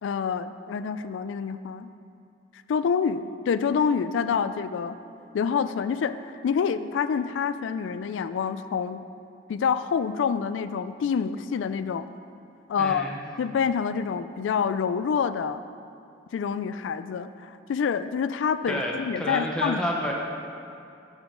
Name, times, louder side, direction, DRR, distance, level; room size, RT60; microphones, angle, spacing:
voice 1, 0.0-1.9 2.7-5.0 5.3-6.1 6.4-9.0 9.5-12.1 12.7-13.1 13.4-15.6 16.3-19.8, left 6 dB, 85° left, 13 dB, 0.3 m, -27 dB
voice 2, 12.8-13.2 18.7-20.1, equal, 5° left, -2 dB, 0.8 m, -29 dB
8.6 x 6.4 x 3.8 m, 2.5 s
head